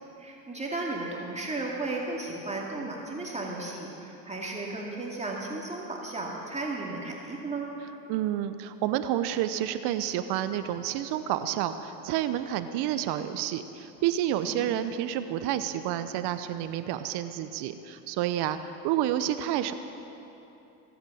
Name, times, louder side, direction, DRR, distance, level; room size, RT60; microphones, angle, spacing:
voice 1, 0.2-7.7 14.5-14.6, right 2 dB, 15° right, -2 dB, 2.2 m, -34 dB
voice 2, 8.1-18.6 18.8-19.7, right 11 dB, 50° right, 10 dB, 0.8 m, -29 dB
22.5 x 9.0 x 7.0 m, 3.0 s
hypercardioid pair, 95°, 50 cm